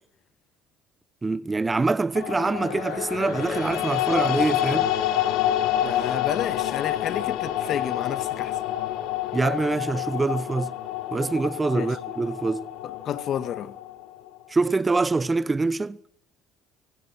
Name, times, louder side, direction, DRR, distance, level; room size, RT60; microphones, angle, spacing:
voice 1, 1.2-4.9 9.3-10.7 11.1-12.6 14.5-16.0, right 3 dB, 20° right, 0.9 m, -25 dB
sound 1, 2.2-14.4, left 12 dB, 70° left, 2.3 m, -28 dB
voice 2, 5.8-8.6 11.7-12.0 12.8-13.8, left 9 dB, 55° left, 1.9 m, -31 dB
29.5 x 23.5 x 6.3 m
hypercardioid pair, 65°, 0 cm